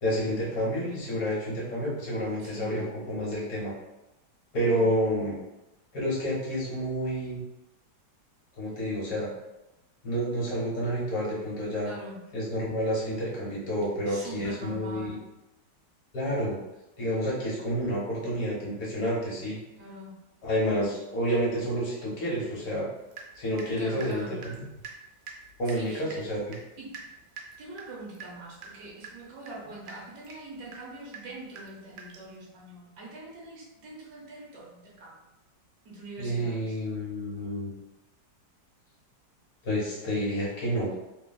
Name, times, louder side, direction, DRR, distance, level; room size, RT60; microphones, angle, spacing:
voice 1, 0.0-3.7 4.5-5.3 5.9-7.4 8.6-9.3 10.0-11.9 12.3-15.2 16.1-16.6 17.0-19.6 20.4-22.9 23.4-24.6 25.6-26.6 36.2-37.7 39.6-40.9, equal, 60° left, -5 dB, 1.4 m, -29 dB
voice 2, 2.4-2.9 4.7-4.9 11.8-12.2 14.1-15.2 19.7-20.1 23.7-24.3 25.7-26.2 26.8-27.0 27.6-35.3 35.8-36.7, right 2 dB, 65° right, -5 dB, 1.3 m, -43 dB
Water tap faucet / Drip, 23.1-23.7 24.0-32.4, right 5 dB, 90° right, 1.3 m, -46 dB
3.3 x 2.2 x 2.2 m, 0.96 s
omnidirectional pair, 1.9 m